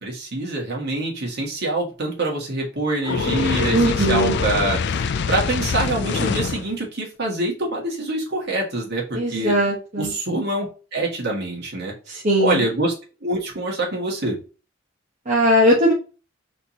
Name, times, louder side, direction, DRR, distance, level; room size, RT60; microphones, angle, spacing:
voice 1, 0.0-9.5 10.0-10.7 10.9-11.9 12.4-12.9 13.2-14.4, right 2 dB, 55° right, -2 dB, 2.1 m, -25 dB
Fire, 3.0-6.7, left 5 dB, 55° left, 0.4 m, -24 dB
voice 2, 3.7-4.4 9.1-10.1 12.1-12.6 15.3-15.9, equal, 35° right, -4 dB, 1.3 m, -19 dB
4.3 x 4.3 x 2.9 m, 0.34 s
head